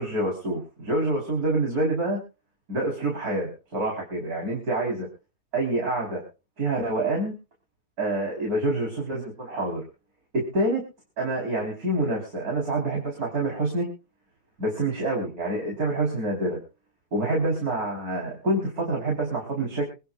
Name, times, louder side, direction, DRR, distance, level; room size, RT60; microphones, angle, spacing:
voice 1, 0.0-2.2 2.7-5.1 5.5-6.2 6.6-7.3 8.0-9.8 10.3-10.8 11.2-13.9 14.6-16.6 17.1-19.9, right 2 dB, 75° right, -1 dB, 5.0 m, -27 dB
26.0 x 11.0 x 2.5 m, 0.33 s
omnidirectional pair, 1.6 m